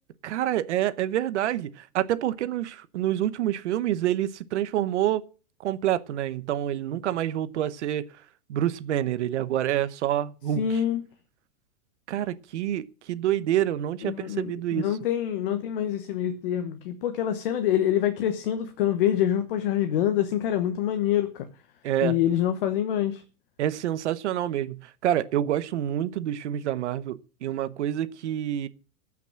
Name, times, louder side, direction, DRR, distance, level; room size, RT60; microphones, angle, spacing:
voice 1, 0.2-5.2 5.6-8.1 8.5-10.8 12.1-14.9 21.8-22.2 23.6-28.7, right 12 dB, 50° right, 0.9 m, -27 dB
voice 2, 10.6-11.0 14.0-21.5 22.0-23.2, left 10 dB, 40° left, 1.1 m, -26 dB
14.5 x 6.1 x 7.5 m
supercardioid pair, 175°, 44 cm